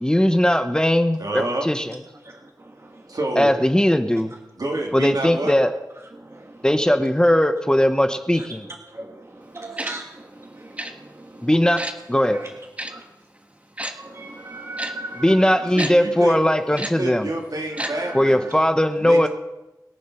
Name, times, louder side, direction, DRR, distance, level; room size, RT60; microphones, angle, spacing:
voice 1, 0.0-2.0 3.4-4.3 4.9-5.7 6.6-8.7 11.4-11.8 12.1-12.4 15.1-17.3 18.1-19.3, equal, 10° left, 8 dB, 0.9 m, -19 dB
voice 2, 1.2-1.7 3.1-3.5 4.6-5.5 15.7-16.4 16.7-18.5 19.0-19.3, right 2 dB, 65° right, 0 dB, 3.1 m, -28 dB
voice 3, 2.2-3.0 6.2-6.6 8.3-8.4 8.9-11.5 12.3-12.5 12.8-13.0 13.8-15.6 17.8-18.5, right 2 dB, 40° right, 2 dB, 1.5 m, -38 dB
Tick-tock, 9.8-9.9 10.8-10.9 11.8-11.9 12.8-12.9 13.8-13.9 14.8-14.9 15.8-15.9 16.8-16.9 17.8-17.9 18.2-18.3, right 1 dB, 20° right, 1.4 m, -29 dB
21.5 x 7.3 x 5.9 m, 0.98 s
wide cardioid pair, 70°, 7 cm